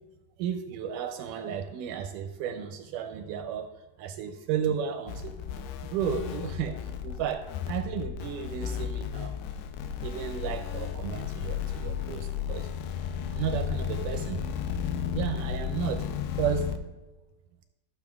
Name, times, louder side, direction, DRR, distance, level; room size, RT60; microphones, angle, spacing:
voice 1, 0.4-3.7 4.0-5.4 5.8-9.6 10.0-12.7 13.3-14.4 15.1-16.1 16.4-16.7, right 8 dB, 80° right, 7 dB, 2.0 m, -33 dB
sound 1, 5.1-16.8, left 8 dB, 90° left, 2.3 m, -34 dB
14.0 x 7.0 x 2.3 m, 1.1 s
omnidirectional pair, 3.9 m